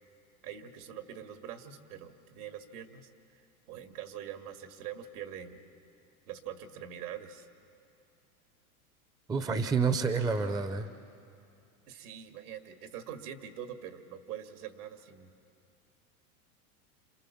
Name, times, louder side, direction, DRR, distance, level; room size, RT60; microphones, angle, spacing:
voice 1, 0.4-3.4 3.7-5.6 6.3-7.5 11.9-15.3, right 9 dB, 80° right, 7 dB, 2.0 m, -44 dB
voice 2, 9.3-10.9, right 5 dB, 10° right, 10 dB, 0.6 m, -28 dB
27.5 x 27.5 x 7.1 m, 2.5 s
supercardioid pair, 135°, 45 cm